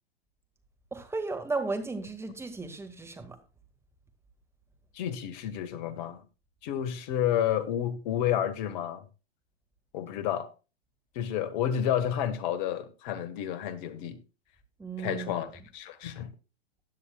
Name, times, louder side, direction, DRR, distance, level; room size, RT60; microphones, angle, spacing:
voice 1, 0.9-3.4 14.8-15.4, right 3 dB, 10° right, 1.8 m, -34 dB
voice 2, 4.9-6.2 6.6-9.1 9.9-10.5 11.1-14.2 15.0-16.3, left 10 dB, 45° left, 1.5 m, -30 dB
16.0 x 9.8 x 2.3 m
hypercardioid pair, 105°, 32 cm